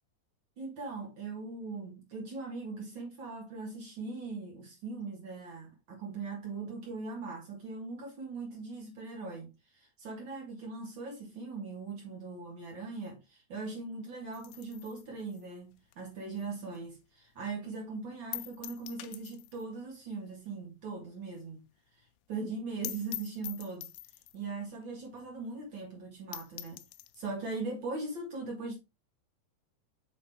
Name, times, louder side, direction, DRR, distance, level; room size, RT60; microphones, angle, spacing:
voice 1, 0.6-21.7 22.0-22.1 22.3-23.9 24.3-26.8 27.1-28.8, right 3 dB, 85° right, 1.0 m, -40 dB
sound 1, 14.3-17.0 17.3-17.4 17.7-17.8 18.3-19.7 20.0-20.1 20.4-20.5 20.9-21.0 21.3-21.4 21.6-21.7 22.0-22.1 22.5-22.6 22.8-24.5 25.2-25.3 25.6-25.7 26.1-26.2 26.3-27.3, left 16 dB, 85° left, 2.5 m, -44 dB
6.3 x 5.1 x 3.5 m
omnidirectional pair, 5.4 m